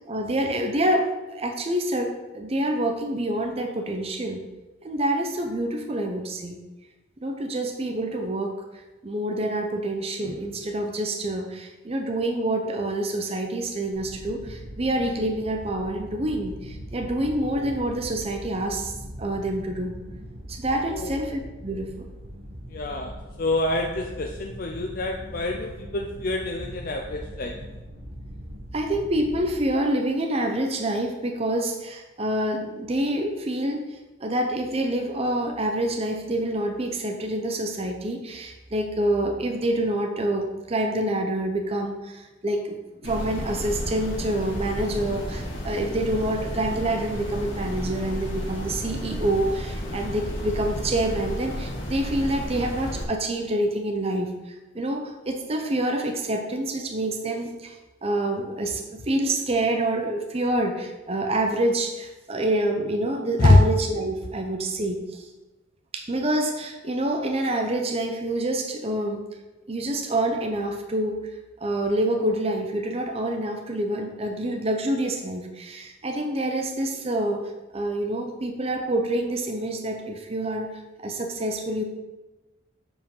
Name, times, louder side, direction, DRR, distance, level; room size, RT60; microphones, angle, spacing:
voice 1, 0.1-4.4 4.8-6.6 7.2-8.6 9.0-18.9 19.2-19.9 20.5-22.1 28.7-42.8 43.0-57.8 58.0-65.3 65.9-69.2 69.7-71.2 71.6-77.4 77.7-80.7 81.0-81.8, right 1 dB, 30° right, 3 dB, 0.7 m, -27 dB
sound 1, 13.9-29.6, equal, 75° right, 1.3 m, -40 dB
voice 2, 22.7-27.6 63.4-63.6, left 2 dB, 50° left, 3 dB, 0.5 m, -24 dB
sound 2, 43.0-53.0, equal, 65° left, 2.1 m, -32 dB
7.6 x 5.1 x 5.4 m, 1.1 s
head